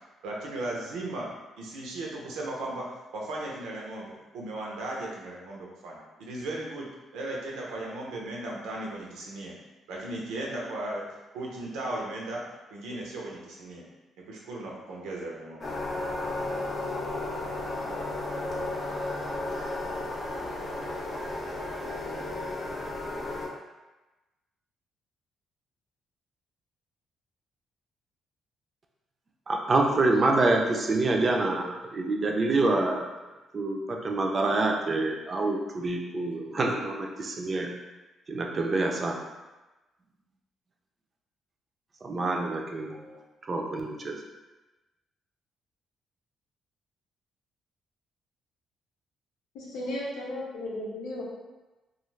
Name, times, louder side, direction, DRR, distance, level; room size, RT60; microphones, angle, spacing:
voice 1, 0.2-1.3 1.6-2.9 3.1-6.9 7.1-9.5 9.9-11.0 11.3-12.4 12.7-13.8 14.3-15.8, right 2 dB, 90° right, -3 dB, 0.6 m, -36 dB
sound 1, 15.6-23.5, left 2 dB, 45° left, 0.7 m, -33 dB
voice 2, 29.5-33.1 33.5-37.7 38.3-39.2 42.0-44.2, right 2 dB, 40° right, 1 dB, 0.5 m, -27 dB
voice 3, 49.6-51.3, left 1 dB, 90° left, -3 dB, 0.7 m, -35 dB
2.4 x 2.4 x 3.1 m, 1.1 s
cardioid pair, 90°, 0 cm